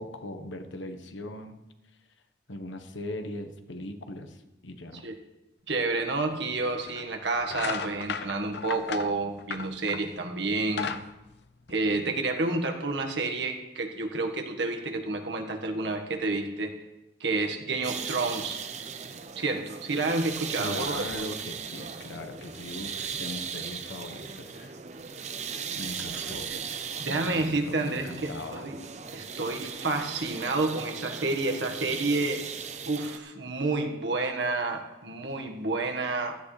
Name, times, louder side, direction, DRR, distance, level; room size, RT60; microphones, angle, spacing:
voice 1, 0.0-1.6 2.5-5.0 20.6-24.7 25.7-26.5 27.0-28.7, left 1 dB, 90° left, 6 dB, 1.3 m, -39 dB
voice 2, 5.7-10.9 11.7-16.8 17.2-18.6 19.3-21.3 26.5-26.6 27.0-28.8 29.1-32.4 32.8-36.4, right 3 dB, 70° right, 4 dB, 1.6 m, -29 dB
sound 1, 6.1-6.2 6.9-7.1 7.4-10.2 10.5-12.2, left 5 dB, 60° left, 0.6 m, -35 dB
sound 2, 17.8-33.2, right 6 dB, 40° right, 0.7 m, -38 dB
16.0 x 13.5 x 3.3 m, 0.99 s
head